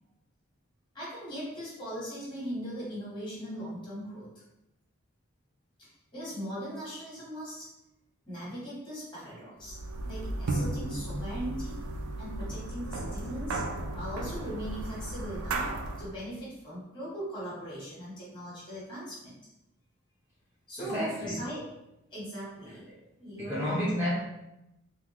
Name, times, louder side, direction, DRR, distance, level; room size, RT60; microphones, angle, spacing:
voice 1, 0.9-4.3 5.8-7.7 8.3-9.8 10.0-11.8 12.2-13.6 13.9-15.7 16.0-19.4 20.7-21.7 22.1-22.8 23.2-23.8, equal, 20° left, -8 dB, 1.3 m, -39 dB
sound 1, 9.6-16.1, right 2 dB, 80° right, 0.4 m, -35 dB
voice 2, 20.8-21.4 22.9-23.0 23.4-24.1, equal, 10° right, -9 dB, 0.5 m, -31 dB
3.6 x 2.2 x 2.9 m, 0.89 s
head